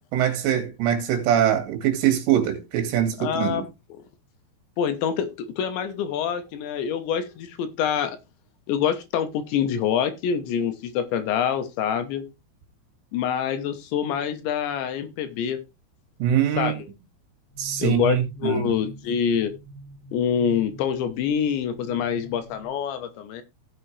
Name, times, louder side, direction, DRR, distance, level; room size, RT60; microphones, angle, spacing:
voice 1, 0.1-3.6 16.2-16.7 17.6-18.7, right 10 dB, 80° right, 4.6 m, -23 dB
voice 2, 3.2-3.6 4.8-8.2 8.7-12.3 13.1-15.6 16.6-16.9 17.8-19.6 20.1-23.4, left 8 dB, 75° left, 3.2 m, -26 dB
sound 1, 17.5-22.7, right 1 dB, 30° left, 7.3 m, -45 dB
16.5 x 6.8 x 3.3 m
omnidirectional pair, 5.7 m